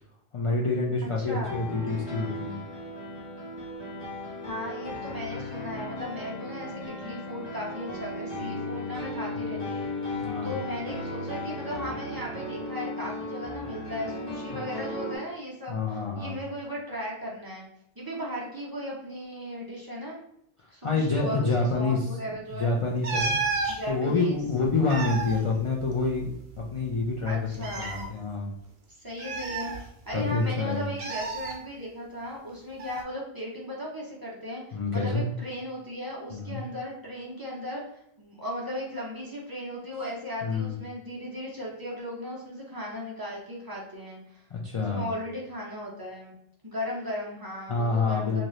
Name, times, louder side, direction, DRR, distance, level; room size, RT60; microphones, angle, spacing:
voice 1, 0.3-2.6 9.4-9.7 10.2-10.5 15.7-16.4 20.8-22.1 22.5-23.4 23.9-26.3 26.6-28.5 30.1-30.9 34.7-35.3 36.3-36.6 40.4-40.8 44.5-45.1 47.7-48.4, left 3 dB, 60° left, -1 dB, 0.3 m, -27 dB
voice 2, 1.0-1.5 4.4-17.7 18.0-20.2 20.7-22.7 23.7-24.4 24.8-25.1 27.2-28.1 28.9-29.7 30.1-37.8 38.2-44.4 44.8-46.3 46.6-48.4, equal, 25° right, -5 dB, 0.5 m, -36 dB
Piano, 1.5-15.2, left 1 dB, 40° left, 1.1 m, -36 dB
sound 1, 23.0-23.8 24.7-26.4 26.6-26.7 27.5-28.1 29.2-30.2 31.0-31.6 32.8-33.0, right 4 dB, 75° right, 0.9 m, -31 dB
2.7 x 2.6 x 3.1 m, 0.77 s
omnidirectional pair, 1.1 m